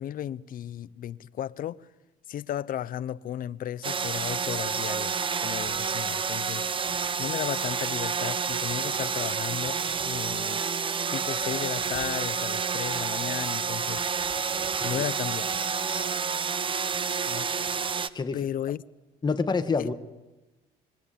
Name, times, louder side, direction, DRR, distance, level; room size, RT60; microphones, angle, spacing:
voice 1, 0.0-1.8 2.3-6.7 7.2-10.6 11.1-14.0 14.8-15.6 17.3-17.5 18.3-18.8, left 11 dB, 55° left, 0.8 m, -34 dB
sound 1, 3.8-18.1, right 6 dB, 30° right, 1.0 m, -29 dB
voice 2, 19.2-19.9, left 4 dB, 25° left, 1.5 m, -27 dB
25.0 x 23.0 x 9.1 m
cardioid pair, 110°, 17 cm